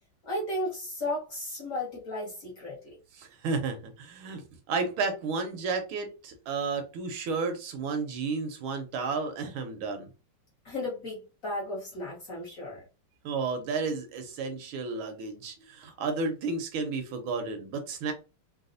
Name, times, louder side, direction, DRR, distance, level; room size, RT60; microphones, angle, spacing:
voice 1, 0.2-3.0 10.6-12.8, left 1 dB, 50° left, 1.2 m, -34 dB
voice 2, 3.1-10.1 13.2-18.1, right 4 dB, 75° right, 1.4 m, -32 dB
4.0 x 2.2 x 2.5 m
omnidirectional pair, 2.4 m